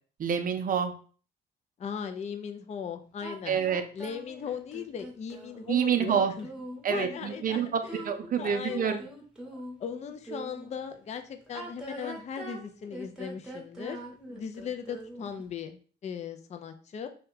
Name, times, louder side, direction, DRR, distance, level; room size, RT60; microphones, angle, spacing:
voice 1, 0.2-0.9 3.5-3.8 5.7-6.3 6.8-9.0, right 8 dB, 45° right, 7 dB, 0.5 m, -27 dB
voice 2, 1.8-3.6 3.9-6.5 6.9-8.0 8.4-9.0 9.8-14.0 14.3-17.1, left 7 dB, 35° left, 7 dB, 0.4 m, -38 dB
sound 1, 3.2-10.7 11.4-15.4, right 1 dB, 5° right, 0.9 m, -43 dB
2.7 x 2.2 x 3.9 m, 0.41 s
cardioid pair, 90°, 20 cm